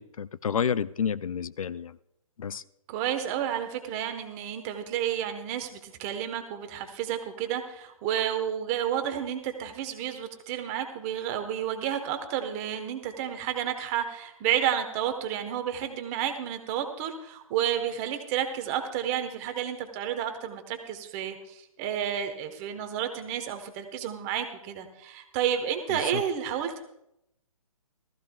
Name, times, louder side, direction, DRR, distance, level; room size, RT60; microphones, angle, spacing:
voice 1, 0.0-2.0 2.4-2.6 26.1-26.2, left 7 dB, 75° left, 0.5 m, -30 dB
voice 2, 2.9-26.8, right 10 dB, 25° right, 1.2 m, -31 dB
18.5 x 14.5 x 2.3 m
hypercardioid pair, 145°, 18 cm